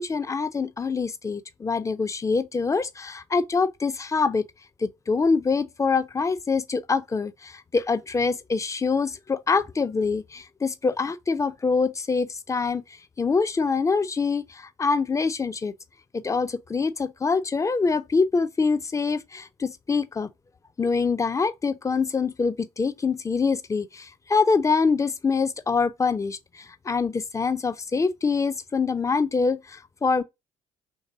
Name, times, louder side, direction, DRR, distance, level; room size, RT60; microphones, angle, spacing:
voice 1, 0.0-4.4 4.8-12.8 13.2-15.7 16.1-20.3 20.8-30.2, left 4 dB, 20° left, 0.4 m, -25 dB
3.2 x 2.7 x 3.7 m
figure-of-eight pair, 50°, 17 cm